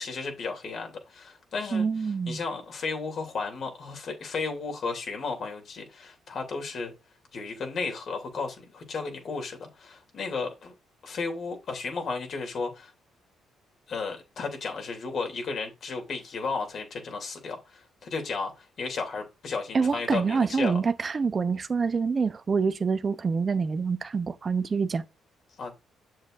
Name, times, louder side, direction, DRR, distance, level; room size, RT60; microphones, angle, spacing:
voice 1, 0.0-1.9 2.3-6.9 7.3-10.7 11.0-12.9 13.9-20.7 25.6-25.7, left 4 dB, 55° left, 2.9 m, -34 dB
voice 2, 1.7-2.4 19.7-25.0, right 5 dB, 40° right, 0.8 m, -26 dB
7.5 x 7.3 x 2.6 m
cardioid pair, 85°, 0 cm